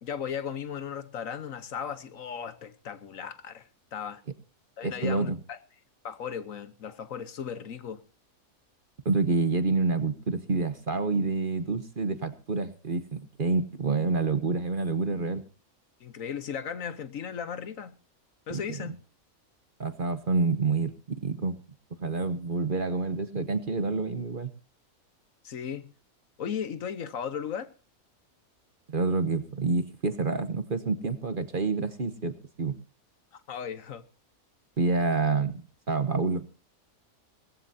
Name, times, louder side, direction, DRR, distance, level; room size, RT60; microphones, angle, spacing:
voice 1, 0.0-4.2 4.8-5.6 6.0-8.0 16.0-18.0 18.5-19.0 25.4-25.9 26.4-27.7 33.3-34.0, left 7 dB, 65° left, 1.4 m, -36 dB
voice 2, 4.8-5.4 9.0-15.4 18.5-18.9 19.8-21.6 22.0-24.5 28.9-32.8 34.8-36.5, right 3 dB, 40° right, 1.1 m, -28 dB
19.5 x 15.5 x 2.7 m
omnidirectional pair, 1.5 m